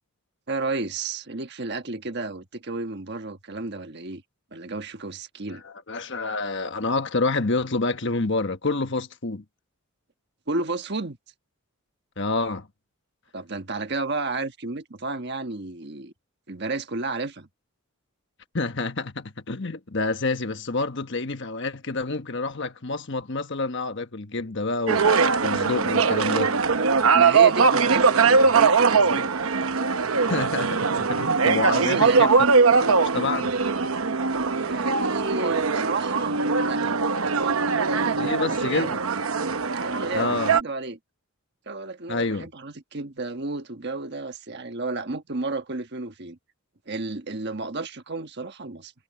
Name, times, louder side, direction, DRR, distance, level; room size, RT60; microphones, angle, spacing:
voice 1, 0.5-4.2 4.5-5.6 10.5-11.2 13.3-16.1 16.5-17.5 27.1-29.3 31.4-32.3 34.6-36.8 37.3-38.2 38.5-39.0 39.7-41.0 41.7-46.4 46.9-48.9, right 3 dB, 50° right, 1.4 m, -32 dB
voice 2, 5.5-9.4 12.2-12.7 18.5-26.7 30.3-32.3 32.7-33.5 38.2-39.0 40.1-40.6 42.1-42.5, left 3 dB, 55° left, 1.3 m, -28 dB
sound 1, 24.9-40.6, right 5 dB, 70° right, 0.9 m, -21 dB
head